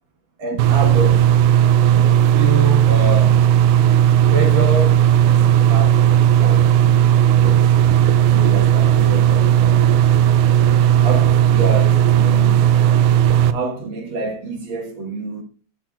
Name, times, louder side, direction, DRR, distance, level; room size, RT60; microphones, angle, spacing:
voice 1, 0.4-1.3 1.9-3.4 4.3-5.0 5.3-6.7 7.4-7.7 8.3-9.8 11.0-12.6 13.5-15.4, right 2 dB, 55° right, 1.4 m, -27 dB
sound 1, 0.6-13.5, right 10 dB, 80° right, 2.1 m, -14 dB
14.0 x 6.3 x 2.3 m
omnidirectional pair, 3.8 m